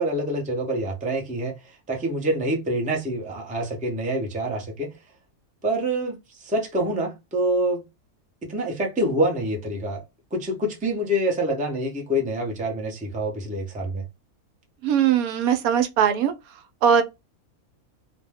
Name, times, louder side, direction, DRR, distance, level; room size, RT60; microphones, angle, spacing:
voice 1, 0.0-5.0 5.6-7.8 8.4-10.0 10.3-14.0, right 1 dB, 10° right, 0.4 m, -26 dB
voice 2, 14.8-16.3 16.8-17.0, right 8 dB, 80° right, 1.0 m, -20 dB
2.6 x 2.1 x 3.4 m
omnidirectional pair, 1.5 m